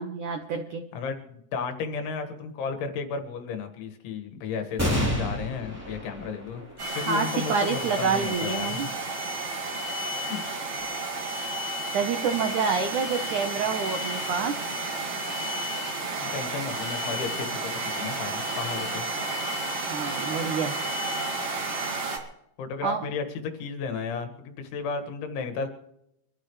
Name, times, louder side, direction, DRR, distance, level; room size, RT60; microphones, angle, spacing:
voice 1, 0.0-0.8 6.9-8.9 11.9-14.6 19.9-20.7 22.8-23.0, right 6 dB, 85° right, 5 dB, 1.7 m, -28 dB
voice 2, 0.9-8.8 10.2-10.4 16.2-19.1 22.6-25.7, left 5 dB, 85° left, 6 dB, 4.2 m, -33 dB
sound 1, 4.8-11.7 12.3-12.4 13.5-14.1, equal, 5° right, 2.4 m, -34 dB
sound 2, 6.8-22.2, right 2 dB, 45° right, 2.3 m, -31 dB
25.0 x 14.0 x 3.3 m, 0.79 s
omnidirectional pair, 5.3 m